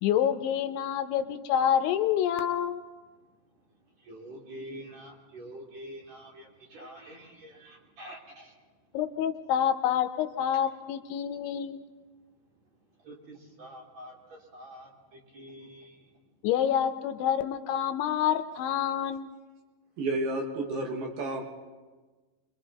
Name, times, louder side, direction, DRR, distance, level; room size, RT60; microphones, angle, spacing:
voice 1, 0.0-2.8 8.9-11.8 16.4-19.3, left 9 dB, 80° left, 8 dB, 3.0 m, -27 dB
voice 2, 4.1-8.5 13.1-14.1 14.5-14.9 15.3-15.9, right 1 dB, 40° right, -2 dB, 3.9 m, -46 dB
voice 3, 20.0-21.4, right 2 dB, 60° right, 1 dB, 3.4 m, -31 dB
29.0 x 23.0 x 4.1 m, 1.3 s
omnidirectional pair, 5.5 m